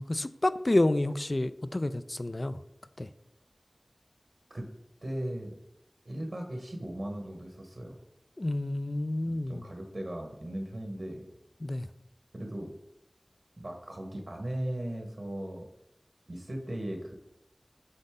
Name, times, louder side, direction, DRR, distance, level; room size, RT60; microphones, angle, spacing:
voice 1, 0.0-2.6 3.0-3.1 8.4-9.6 11.6-11.9, left 1 dB, 50° left, 13 dB, 0.4 m, -29 dB
voice 2, 5.0-5.5 6.0-8.0 9.2-11.2 12.3-12.7 13.6-15.6 16.3-17.1, right 1 dB, 65° right, 2 dB, 1.2 m, -37 dB
8.1 x 3.9 x 3.7 m, 0.85 s
wide cardioid pair, 45°, 0 cm